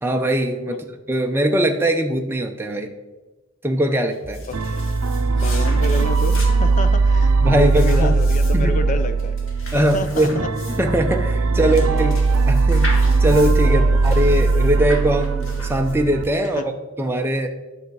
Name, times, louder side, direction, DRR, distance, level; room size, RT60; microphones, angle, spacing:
voice 1, 0.0-0.8 1.1-2.9 3.6-4.4 7.4-8.2 8.5-8.8 9.7-10.4 10.7-12.9 13.2-16.7 17.0-17.5, right 1 dB, 10° right, 3 dB, 0.6 m, -21 dB
sound 1, 4.1-16.2, left 2 dB, 60° left, 1.9 m, -38 dB
sound 2, 4.2-9.2, right 2 dB, 35° right, 1.3 m, -38 dB
sound 3, 4.5-16.2, right 3 dB, 75° right, 0.6 m, -19 dB
voice 2, 5.4-9.4 9.7-10.5 11.6-12.2 13.6-14.0 16.6-16.7, left 2 dB, 35° left, 9 dB, 0.6 m, -29 dB
9.6 x 6.6 x 4.7 m, 1.2 s
head